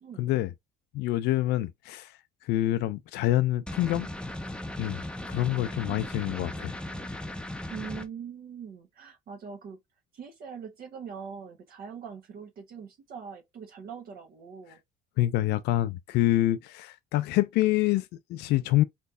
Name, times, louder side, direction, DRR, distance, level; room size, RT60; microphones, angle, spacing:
voice 1, 0.2-0.5 0.9-4.1 4.8-5.0 5.3-6.7 15.2-18.8, left 15 dB, 80° left, 0.4 m, -26 dB
sound 1, 3.7-8.1, left 1 dB, 5° left, 0.6 m, -37 dB
voice 2, 5.9-7.1 7.7-9.8 10.1-14.8, right 6 dB, 60° right, 1.2 m, -43 dB
4.2 x 3.1 x 2.5 m
cardioid pair, 110°, 17 cm